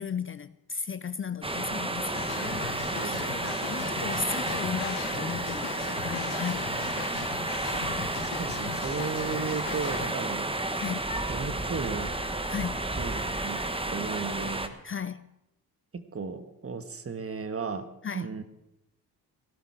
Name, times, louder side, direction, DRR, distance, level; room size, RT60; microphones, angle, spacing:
voice 1, 0.0-2.8 3.0-7.3 10.7-11.1 12.5-12.8 14.8-15.3 18.0-18.3, left 6 dB, 35° left, 0.5 m, -36 dB
sound 1, 1.4-14.7, right 2 dB, 15° right, 1.3 m, -32 dB
sound 2, 2.1-10.1, left 10 dB, 85° left, 1.1 m, -39 dB
voice 2, 2.9-3.2 6.7-7.1 8.2-10.5 11.3-12.2 12.9-13.6 13.9-14.8 15.9-17.9 18.1-18.4, right 5 dB, 35° right, 1.6 m, -35 dB
17.5 x 12.0 x 4.9 m
supercardioid pair, 65°, 39 cm